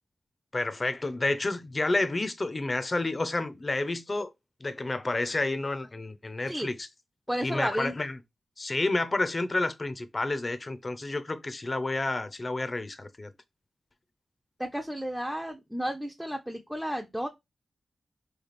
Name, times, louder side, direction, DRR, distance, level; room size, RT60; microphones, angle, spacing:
voice 1, 0.5-4.3 4.6-6.9 7.4-8.2 8.6-13.3, left 2 dB, 40° left, 0.6 m, -30 dB
voice 2, 7.3-8.0 14.6-17.3, equal, 5° right, 0.6 m, -32 dB
3.3 x 2.3 x 4.1 m
cardioid pair, 40°, 0 cm